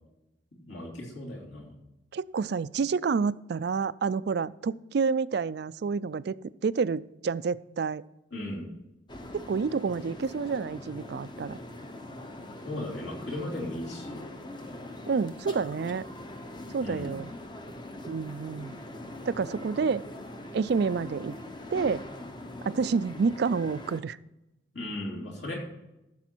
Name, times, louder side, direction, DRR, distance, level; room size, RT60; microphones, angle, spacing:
voice 1, 0.5-1.7 8.3-8.7 12.6-14.2 16.8-17.1 24.7-25.6, left 1 dB, 65° left, -1 dB, 2.9 m, -36 dB
voice 2, 2.1-6.4 6.6-8.0 9.3-11.6 15.1-16.1 16.7-17.3 18.1-18.7 19.3-20.0 20.5-21.3 21.7-22.0 22.6-24.2, right 5 dB, 55° right, 17 dB, 0.3 m, -29 dB
sound 1, 9.1-24.0, left 1 dB, 25° left, 0.8 m, -42 dB
14.5 x 6.9 x 4.5 m, 0.93 s
head